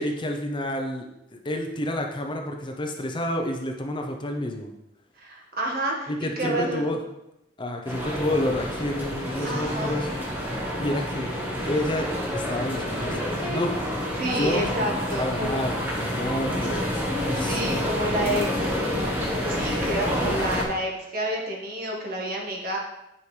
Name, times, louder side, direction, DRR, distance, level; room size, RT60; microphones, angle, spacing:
voice 1, 0.0-4.7 6.1-7.0 7.6-10.1 10.8-11.3 11.7-14.6 15.1-16.9 17.3-17.6 20.2-20.4, left 1 dB, 25° left, 3 dB, 0.6 m, -29 dB
voice 2, 5.2-6.1 6.4-6.9 9.4-10.0 14.2-15.7 17.3-18.7 19.4-22.8, right 1 dB, 55° right, -1 dB, 1.6 m, -29 dB
sound 1, 7.9-20.6, equal, 10° right, 1.4 m, -28 dB
9.7 x 5.1 x 3.3 m, 0.89 s
head